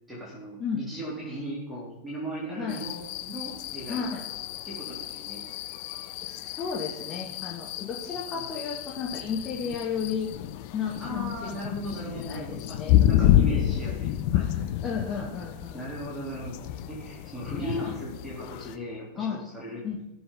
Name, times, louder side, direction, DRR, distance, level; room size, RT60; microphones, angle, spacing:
voice 1, 0.1-4.1 4.6-5.4 8.3-8.4 11.0-12.8 13.1-14.8 15.1-15.3 15.7-19.8, right 1 dB, 10° right, -6 dB, 3.7 m, -37 dB
voice 2, 2.5-2.8 3.9-4.2 6.2-10.3 10.7-11.7 12.1-13.1 13.5-13.8 14.8-15.8 17.4-17.8 19.2-19.4 19.8-20.0, left 6 dB, 25° left, -2 dB, 1.8 m, -33 dB
sound 1, 2.7-18.8, left 12 dB, 45° left, 0.6 m, -29 dB
16.0 x 7.1 x 4.0 m, 0.91 s
figure-of-eight pair, 90°, 0 cm